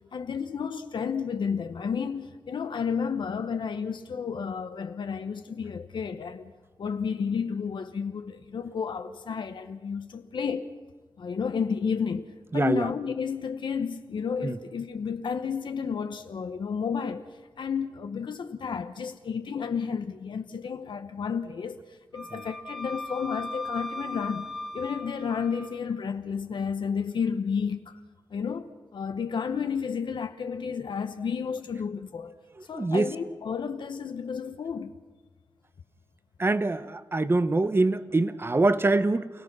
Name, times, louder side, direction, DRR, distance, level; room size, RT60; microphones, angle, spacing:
voice 1, 0.1-6.5 6.8-10.7 11.2-12.3 12.5-17.3 17.6-21.8 22.1-24.5 24.7-28.0 28.3-32.3 32.7-34.9, left 6 dB, 75° left, 0.9 m, -31 dB
voice 2, 12.5-12.9 14.4-14.6 22.3-22.4 32.6-33.1 36.4-39.3, right 2 dB, 30° right, 0.9 m, -24 dB
Wind instrument woodwind instrument, 22.1-25.8, left 2 dB, ahead, 1.4 m, -38 dB
28.5 x 17.5 x 6.1 m
wide cardioid pair, 85°, 8 cm